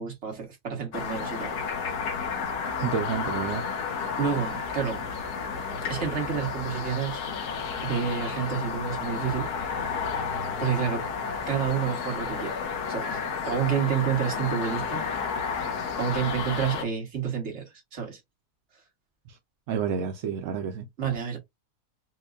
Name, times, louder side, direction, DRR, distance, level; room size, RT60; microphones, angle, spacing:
voice 1, 0.0-1.5 4.2-5.0 5.7-7.2 7.8-9.5 10.6-11.1 11.5-12.6 12.9-15.0 15.5-15.7 16.0-18.2 21.0-21.4, right 8 dB, 45° right, 1.6 m, -29 dB
sound 1, 0.9-16.8, left 5 dB, 75° left, 1.4 m, -32 dB
voice 2, 2.8-3.6 19.7-20.8, right 7 dB, 65° right, 0.8 m, -29 dB
6.0 x 2.2 x 2.4 m
omnidirectional pair, 1.7 m